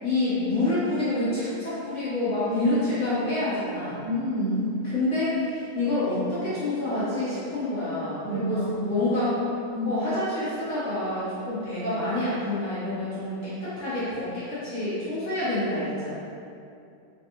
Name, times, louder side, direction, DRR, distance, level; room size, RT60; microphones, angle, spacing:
voice 1, 0.0-4.0 4.9-9.3 9.9-16.1, left 2 dB, 75° left, -10 dB, 0.6 m, -27 dB
voice 2, 2.4-2.8 4.0-4.7 8.2-8.9 9.7-10.0, equal, 35° right, -14 dB, 1.3 m, -29 dB
3.4 x 3.2 x 2.8 m, 2.5 s
omnidirectional pair, 2.4 m